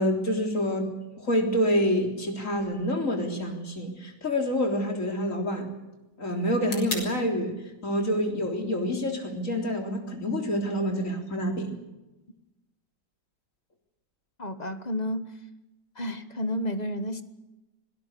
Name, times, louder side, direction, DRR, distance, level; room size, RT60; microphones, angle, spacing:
voice 1, 0.0-5.7 6.2-7.6 7.8-11.7, equal, 40° left, 3 dB, 4.1 m, -27 dB
sound 1, 2.6-10.6, left 2 dB, 70° left, 5.3 m, -45 dB
voice 2, 14.4-15.3 15.9-17.2, left 1 dB, 25° left, 10 dB, 1.2 m, -31 dB
25.5 x 18.5 x 6.8 m, 1.0 s
omnidirectional pair, 2.0 m